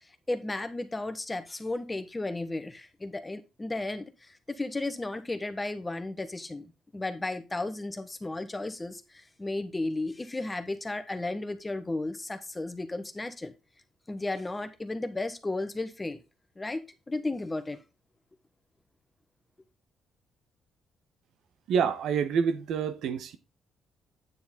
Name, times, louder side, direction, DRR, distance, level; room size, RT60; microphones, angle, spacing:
voice 1, 0.0-13.5 14.1-16.2 16.6-17.8, left 2 dB, 20° left, 1.2 m, -34 dB
voice 2, 21.7-23.4, right 6 dB, 75° right, 1.1 m, -27 dB
9.4 x 6.9 x 3.8 m
cardioid pair, 90°, 0 cm